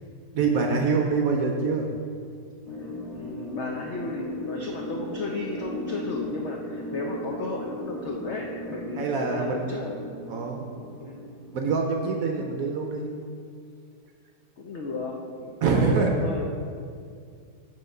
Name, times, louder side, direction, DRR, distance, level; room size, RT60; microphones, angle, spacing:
voice 1, 0.3-1.9 9.0-9.8 10.3-10.7 11.5-13.1 15.6-16.1, right 4 dB, 65° right, 2 dB, 0.9 m, -25 dB
sound 1, 2.6-12.1, left 1 dB, 20° right, 1.0 m, -37 dB
voice 2, 2.8-9.9 11.0-11.3 14.6-16.5, left 2 dB, 70° left, 0 dB, 0.6 m, -34 dB
7.8 x 3.7 x 6.4 m, 2.2 s
omnidirectional pair, 1.9 m